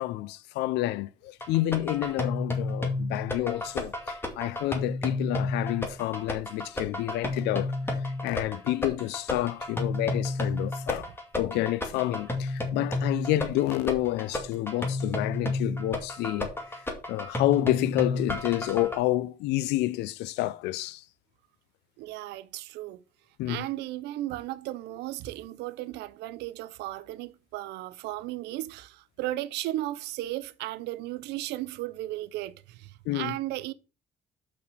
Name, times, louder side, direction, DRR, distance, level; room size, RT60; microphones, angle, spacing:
voice 1, 0.0-7.7 8.2-16.5 17.1-21.0 23.4-23.7 33.1-33.4, left 16 dB, 90° left, 0.6 m, -29 dB
sound 1, 1.4-19.0, left 2 dB, 15° left, 2.3 m, -31 dB
voice 2, 22.0-23.0 23.5-33.7, right 16 dB, 85° right, 0.7 m, -35 dB
6.4 x 5.9 x 6.1 m
cardioid pair, 110°, 17 cm